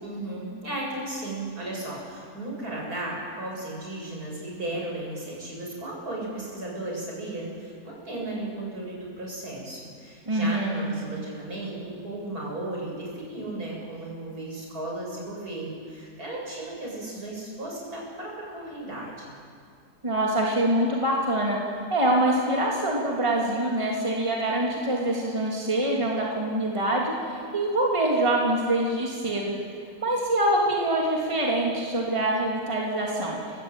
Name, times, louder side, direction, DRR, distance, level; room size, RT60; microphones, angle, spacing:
voice 1, 0.0-19.3, right 2 dB, 70° right, -3 dB, 7.9 m, -35 dB
voice 2, 10.3-10.9 20.0-21.6 21.9-27.1 27.5-29.5 30.0-33.4, right 1 dB, 20° right, -3 dB, 3.3 m, -25 dB
29.5 x 16.0 x 9.1 m, 2.2 s
omnidirectional pair, 1.7 m